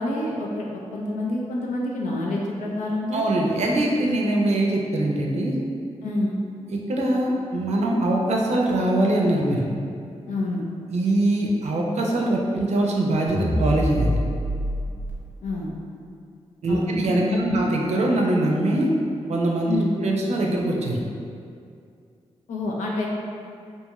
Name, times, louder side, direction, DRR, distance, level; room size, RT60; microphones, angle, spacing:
voice 1, 0.0-3.2 6.0-6.4 10.3-10.6 15.4-15.7 16.7-17.6 19.7-20.0 22.5-23.1, left 2 dB, 85° left, -2 dB, 0.4 m, -27 dB
voice 2, 3.1-5.6 6.7-9.7 10.9-14.2 16.6-18.9 19.3-21.0, right 1 dB, 65° right, -1 dB, 0.5 m, -22 dB
sound 1, 13.3-15.1, equal, 15° right, 0.6 m, -25 dB
2.6 x 2.3 x 2.9 m, 2.4 s
cardioid pair, 60°, 12 cm